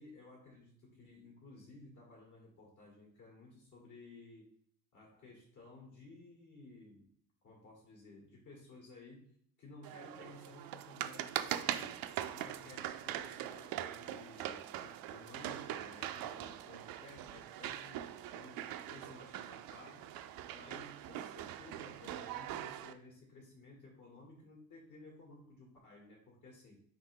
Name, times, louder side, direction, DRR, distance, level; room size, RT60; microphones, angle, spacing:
voice 1, 0.0-4.5 4.9-7.1 7.4-12.0 12.3-20.1 20.5-26.8, left 2 dB, 50° left, -2 dB, 1.7 m, -56 dB
sound 1, 9.8-22.9, right 12 dB, 65° right, 0.5 m, -42 dB
3.7 x 2.7 x 4.7 m, 0.63 s
hypercardioid pair, 65°, 38 cm